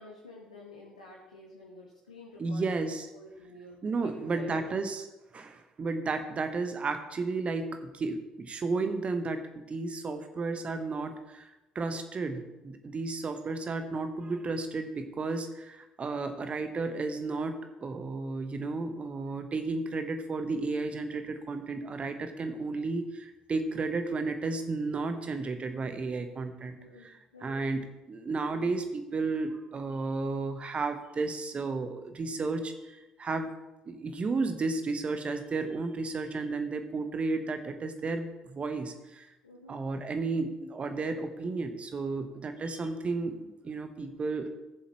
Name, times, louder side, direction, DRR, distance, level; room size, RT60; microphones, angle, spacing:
voice 1, 0.0-2.9 3.1-4.8 26.8-27.6 39.4-39.8, left 2 dB, 85° left, -4 dB, 1.2 m, -50 dB
voice 2, 2.4-3.1 3.8-5.1 5.3-11.5 11.7-27.1 27.4-33.5 33.9-39.3 39.7-44.6, right 3 dB, 35° right, 7 dB, 1.1 m, -33 dB
16.0 x 7.1 x 3.1 m, 0.98 s
figure-of-eight pair, 50°, 4 cm